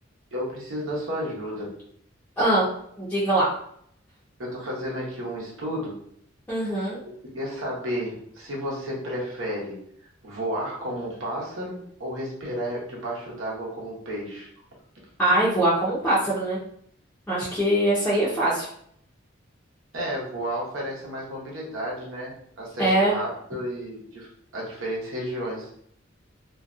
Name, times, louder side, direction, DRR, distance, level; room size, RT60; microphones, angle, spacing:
voice 1, 0.3-1.7 4.4-6.0 6.6-6.8 7.3-9.8 10.2-14.5 19.9-25.7, equal, 85° right, -4 dB, 0.9 m, -32 dB
voice 2, 2.4-2.7 3.0-3.5 6.5-7.0 15.2-16.6 17.3-18.7 22.8-23.1, right 1 dB, 10° left, -9 dB, 0.5 m, -22 dB
2.4 x 2.2 x 2.5 m, 0.68 s
head